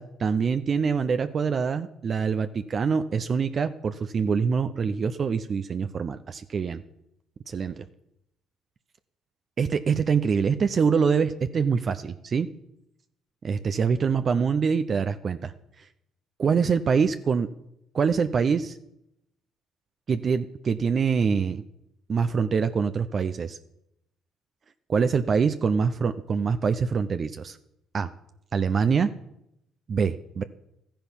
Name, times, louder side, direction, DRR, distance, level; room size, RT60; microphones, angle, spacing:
voice 1, 0.0-6.8 7.5-7.8 9.6-12.5 13.4-15.5 15.8-15.9 16.4-17.5 17.9-18.8 20.1-21.6 22.1-23.6 24.9-27.6 27.9-28.1 28.5-29.1 29.9-30.4, right 6 dB, 45° right, 10 dB, 0.7 m, -25 dB
13.0 x 10.5 x 7.2 m, 0.80 s
supercardioid pair, 70°, 0 cm